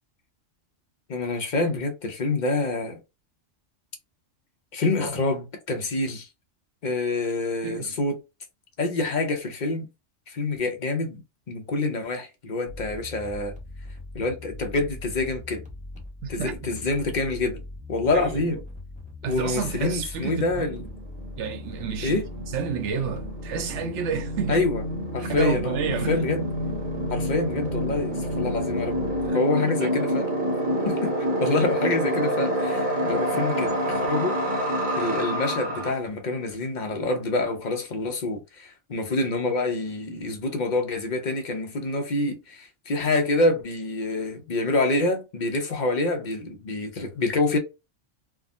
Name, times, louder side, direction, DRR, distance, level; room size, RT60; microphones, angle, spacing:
voice 1, 1.1-3.0 4.7-6.3 6.8-8.2 8.8-9.9 10.3-11.2 11.5-13.5 14.1-15.6 16.3-17.6 17.9-18.6 19.3-20.8 22.0-22.3 24.5-24.8 25.1-25.8 26.1-26.4 27.1-29.0 29.3-30.3 30.8-31.1 31.4-34.7 35.0-47.6, left 2 dB, 45° left, 0.8 m, -26 dB
voice 2, 7.6-8.0 16.2-16.5 18.1-18.6 19.2-20.8 21.4-24.6 25.2-26.3 29.3-29.4 29.8-29.9 30.8-31.0, right 6 dB, 70° right, 1.0 m, -31 dB
sound 1, 12.7-29.3, left 2 dB, 10° right, 0.6 m, -40 dB
sound 2, 20.7-35.9, equal, 40° right, 1.0 m, -28 dB
3.5 x 2.1 x 2.4 m
omnidirectional pair, 1.3 m